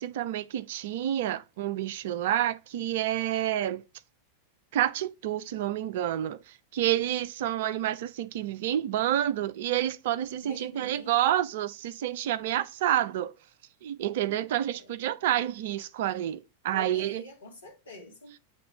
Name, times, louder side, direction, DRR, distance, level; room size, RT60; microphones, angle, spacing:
voice 1, 0.0-3.8 4.7-13.3 13.8-17.2, right 12 dB, 55° right, 0.5 m, -29 dB
voice 2, 10.4-11.4 14.8-15.0 16.7-18.4, left 2 dB, 75° left, 2.2 m, -46 dB
8.5 x 3.3 x 3.7 m
figure-of-eight pair, 90°, 0 cm